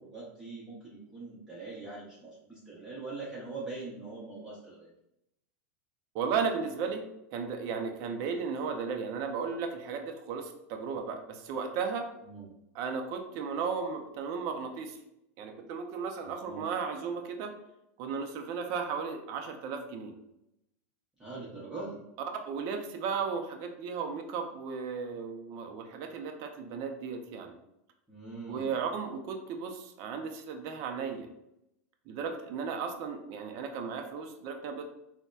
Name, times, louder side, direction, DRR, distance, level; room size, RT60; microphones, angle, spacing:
voice 1, 0.0-4.9 12.2-12.5 16.2-16.6 21.2-22.0 28.1-28.7, right 3 dB, 10° right, -7 dB, 0.7 m, -42 dB
voice 2, 6.1-7.0 7.3-12.1 12.7-15.0 15.4-17.5 18.0-20.1 22.5-27.5 28.5-31.3 32.1-34.9, right 5 dB, 50° right, 4 dB, 0.4 m, -35 dB
4.1 x 2.1 x 2.3 m, 0.84 s
supercardioid pair, 135°, 8 cm